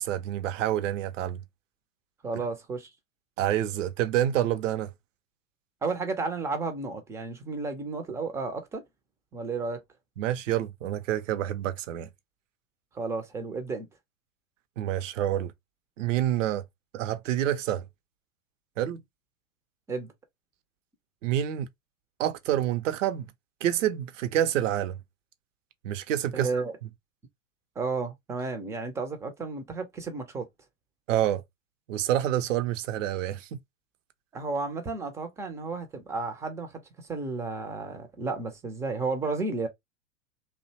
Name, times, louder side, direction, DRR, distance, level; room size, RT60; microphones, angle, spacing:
voice 1, 0.0-1.4 3.4-4.9 10.2-12.1 14.8-15.5 16.0-16.6 16.9-17.9 18.8-19.0 21.2-21.7 22.2-23.3 23.6-25.0 25.8-26.6 31.1-31.4 31.9-33.6, right 12 dB, 70° right, 0.6 m, -27 dB
voice 2, 2.2-2.9 5.8-8.8 9.3-9.8 12.9-13.9 19.9-20.1 26.3-26.8 27.8-30.5 34.3-39.7, right 3 dB, 10° right, 0.3 m, -32 dB
2.7 x 2.1 x 2.7 m
hypercardioid pair, 100°, 40 cm